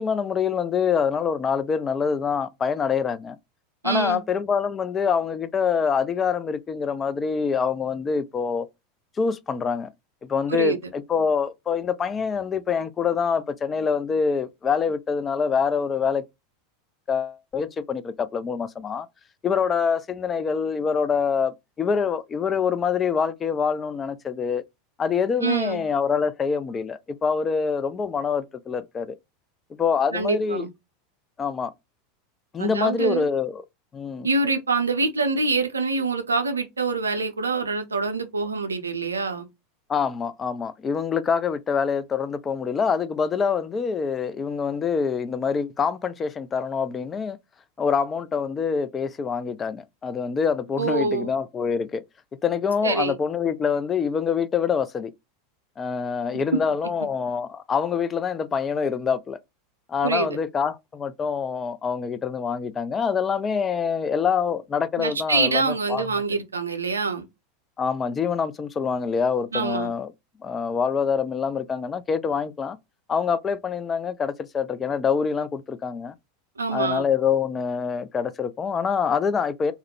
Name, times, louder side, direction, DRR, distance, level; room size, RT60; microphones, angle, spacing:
voice 1, 0.0-3.4 3.8-8.7 9.2-9.9 10.2-16.2 17.1-19.1 19.4-24.6 25.0-29.2 29.7-30.7 31.4-31.7 32.5-33.5 33.9-34.3 39.9-47.4 47.8-52.0 52.4-55.1 55.8-59.4 59.9-66.0 67.8-70.1 70.4-72.8 73.1-76.1 76.7-79.7, left 6 dB, 25° left, 0.3 m, -25 dB
voice 2, 3.8-4.2 10.5-10.8 25.4-25.8 30.1-30.7 32.6-33.3 34.2-39.5 50.8-51.3 52.8-53.1 56.5-56.6 60.0-60.4 65.0-67.2 69.5-69.9 76.6-77.0, right 4 dB, 80° right, 0.5 m, -25 dB
2.4 x 2.0 x 2.8 m
figure-of-eight pair, 85°, 0 cm